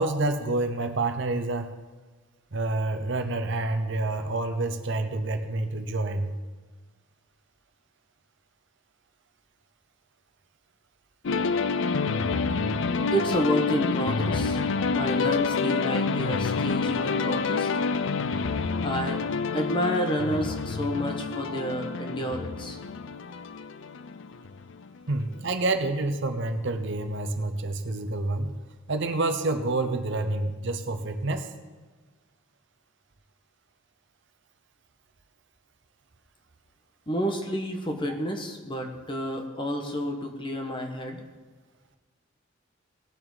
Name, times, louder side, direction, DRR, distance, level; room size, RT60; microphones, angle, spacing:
voice 1, 0.0-1.7 2.5-6.3 25.1-28.5 28.9-31.5, right 2 dB, 55° right, 7 dB, 0.8 m, -28 dB
sound 1, 11.2-25.0, left 4 dB, 60° left, 0.5 m, -28 dB
voice 2, 13.1-14.6 14.9-17.7 18.8-19.2 19.5-22.8 37.1-41.2, equal, 25° left, 3 dB, 1.3 m, -30 dB
19.0 x 7.8 x 4.0 m, 1.4 s
head